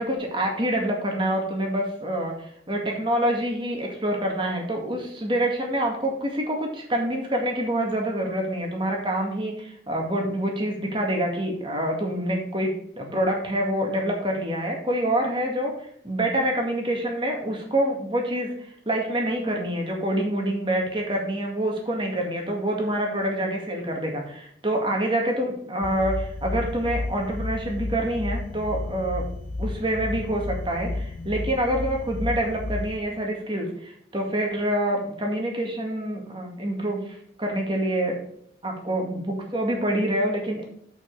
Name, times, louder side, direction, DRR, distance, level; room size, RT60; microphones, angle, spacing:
voice 1, 0.0-29.3 29.6-38.2 38.6-40.6, right 1 dB, 30° right, 1 dB, 2.0 m, -26 dB
sound 1, 25.8-33.0, left 2 dB, 45° left, 0.6 m, -32 dB
7.3 x 5.8 x 5.4 m, 0.67 s
head